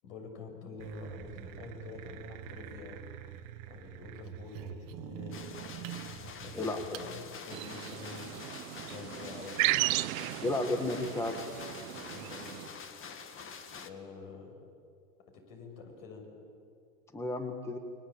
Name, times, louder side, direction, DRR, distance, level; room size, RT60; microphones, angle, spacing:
voice 1, 0.0-3.0 3.7-5.6 6.1-8.5 8.8-9.6 12.1-12.6 13.4-13.5 13.8-14.6 15.3-16.3, left 4 dB, 60° left, 3 dB, 7.4 m, -47 dB
sound 1, 0.8-7.1, right 10 dB, 45° right, 1.9 m, -45 dB
sound 2, 5.3-13.9, left 6 dB, 25° left, 2.0 m, -46 dB
sound 3, 7.5-12.7, right 18 dB, 60° right, 0.9 m, -35 dB
voice 2, 10.4-11.5 17.1-17.8, left 2 dB, 5° left, 6 dB, 1.6 m, -32 dB
29.5 x 22.5 x 8.9 m, 2.5 s
hypercardioid pair, 115°, 46 cm